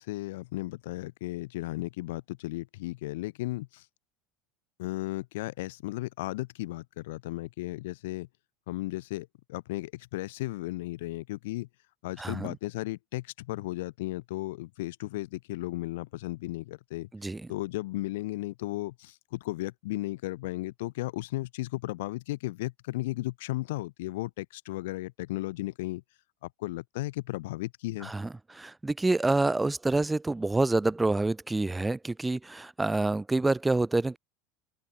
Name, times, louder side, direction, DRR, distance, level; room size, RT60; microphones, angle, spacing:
voice 1, 0.0-3.8 4.8-8.3 8.7-11.7 12.0-17.1 17.5-26.0 26.4-28.1, left 18 dB, 85° left, 0.7 m, -35 dB
voice 2, 12.2-12.5 17.1-17.4 28.0-34.2, right 2 dB, 10° right, 0.4 m, -27 dB
open air
supercardioid pair, 145°, 0 cm